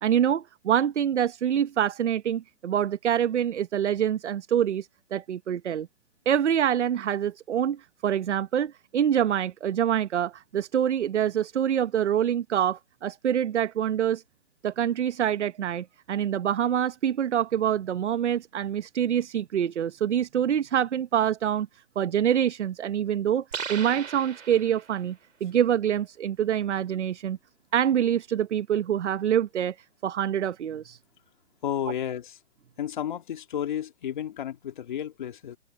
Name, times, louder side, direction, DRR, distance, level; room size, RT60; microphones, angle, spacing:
voice 1, 0.0-5.9 6.3-14.2 14.6-21.7 22.0-25.2 25.4-27.4 27.7-29.8 30.0-31.0, right 9 dB, 60° right, 0.9 m, -26 dB
sound 1, 23.5-25.1, right 7 dB, 80° right, 4.8 m, -37 dB
voice 2, 31.6-32.4 32.8-35.6, left 10 dB, 40° left, 2.6 m, -32 dB
hypercardioid pair, 180°, 38 cm